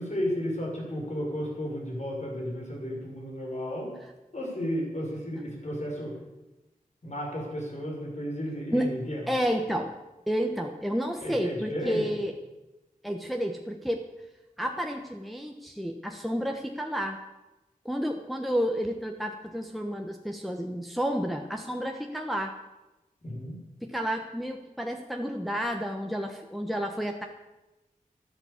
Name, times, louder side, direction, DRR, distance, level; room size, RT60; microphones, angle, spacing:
voice 1, 0.0-3.9 4.3-6.1 7.0-9.3 11.2-12.0 23.2-23.6, equal, 55° left, -2 dB, 5.9 m, -33 dB
voice 2, 9.3-9.9 10.3-12.3 13.0-14.0 14.6-17.2 17.8-22.5 23.8-27.3, equal, ahead, 2 dB, 1.2 m, -30 dB
12.5 x 12.0 x 7.3 m, 1.0 s
wide cardioid pair, 60°, 15 cm